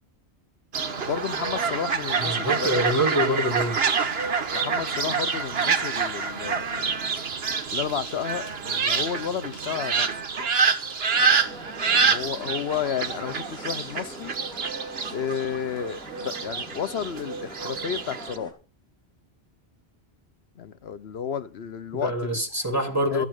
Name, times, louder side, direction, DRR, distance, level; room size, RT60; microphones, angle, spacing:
Fowl, 0.7-18.4, right 5 dB, 75° right, 1.4 m, -27 dB
voice 1, 1.1-2.8 4.5-7.3 7.7-10.1 11.9-14.3 15.1-18.6 20.6-22.4 23.1-23.2, left 8 dB, 75° left, 1.1 m, -32 dB
voice 2, 2.2-3.8 21.9-23.3, equal, 15° right, 2.9 m, -25 dB
sound 1, 11.1-18.5, right 1 dB, 5° left, 3.4 m, -43 dB
14.0 x 7.5 x 6.6 m
omnidirectional pair, 1.1 m